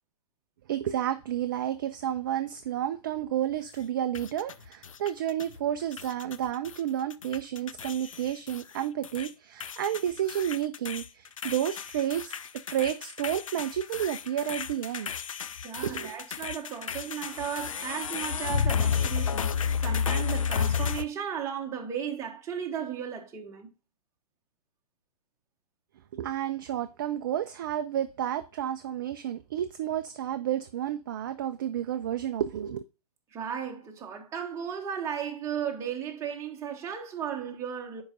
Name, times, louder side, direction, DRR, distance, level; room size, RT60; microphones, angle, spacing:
voice 1, 0.7-12.4 12.7-15.1 15.8-16.1 26.1-32.8, right 10 dB, 35° right, 0.4 m, -31 dB
sound 1, 4.1-5.6 5.9-6.8 7.1-9.3 9.6-21.0, left 7 dB, 55° left, 0.5 m, -32 dB
voice 2, 15.6-23.7 33.3-38.0, right 8 dB, 15° right, 1.1 m, -35 dB
10.5 x 4.7 x 2.4 m
figure-of-eight pair, 120°, 20 cm